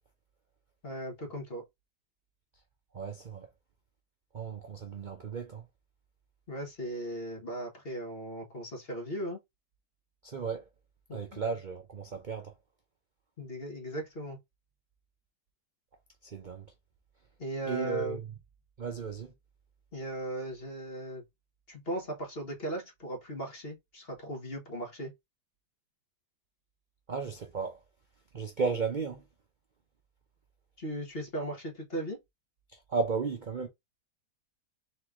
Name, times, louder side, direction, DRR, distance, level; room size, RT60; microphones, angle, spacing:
voice 1, 0.8-1.6 6.5-9.4 11.1-11.4 13.4-14.4 17.4-18.2 19.9-21.2 21.7-25.1 30.8-32.2, right 1 dB, 40° left, 1.7 m, -37 dB
voice 2, 2.9-3.5 4.3-5.6 10.2-10.6 11.1-12.5 16.2-16.7 17.7-18.2 18.8-19.3 27.1-27.8 28.3-29.2 32.9-33.7, right 5 dB, 45° right, 0.6 m, -34 dB
4.0 x 3.3 x 3.6 m
omnidirectional pair, 1.7 m